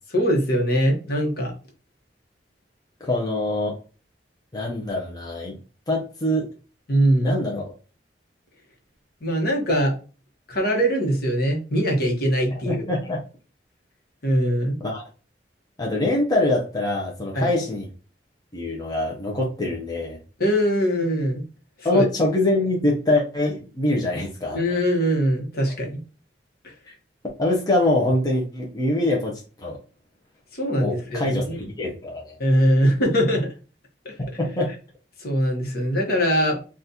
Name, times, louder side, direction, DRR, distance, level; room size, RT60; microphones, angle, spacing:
voice 1, 0.1-1.5 6.9-7.4 9.2-9.9 10.5-12.8 14.2-14.8 17.3-17.5 20.4-21.4 21.9-22.0 24.5-26.0 30.5-31.7 32.4-33.5 34.0-34.1 35.2-36.6, equal, 55° left, 0 dB, 1.1 m, -22 dB
voice 2, 3.0-3.8 4.5-5.6 5.9-6.5 7.2-7.7 12.5-13.2 14.8-15.0 15.8-17.9 18.5-20.2 21.8-24.6 27.4-29.8 30.8-31.4 31.8-32.4 34.2-34.7, left 1 dB, 20° left, -2 dB, 0.6 m, -24 dB
3.9 x 2.4 x 2.7 m, 0.36 s
head